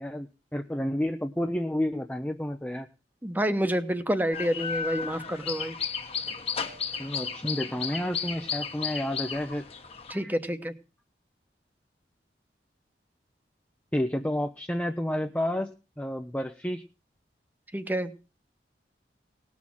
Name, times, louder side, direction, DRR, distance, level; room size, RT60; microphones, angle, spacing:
voice 1, 0.0-2.9 7.0-9.7 10.1-10.3 13.9-16.8, left 1 dB, 10° left, 5 dB, 0.6 m, -30 dB
voice 2, 3.2-5.8 10.1-10.7 17.7-18.1, equal, 10° right, 10 dB, 1.0 m, -28 dB
sound 1, 4.3-10.1, left 6 dB, 35° left, 1.2 m, -34 dB
18.5 x 6.3 x 7.4 m, 0.33 s
head